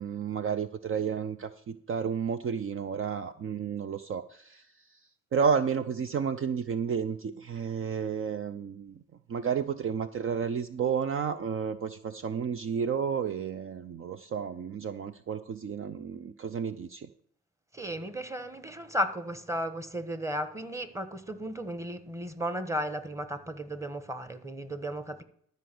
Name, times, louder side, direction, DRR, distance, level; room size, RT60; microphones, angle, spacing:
voice 1, 0.0-4.7 5.3-9.0 9.3-17.1, right 6 dB, 45° right, 11 dB, 0.6 m, -31 dB
voice 2, 17.7-25.2, equal, 10° right, 11 dB, 1.3 m, -34 dB
12.5 x 5.2 x 7.8 m, 0.64 s
cardioid pair, 90°, 30 cm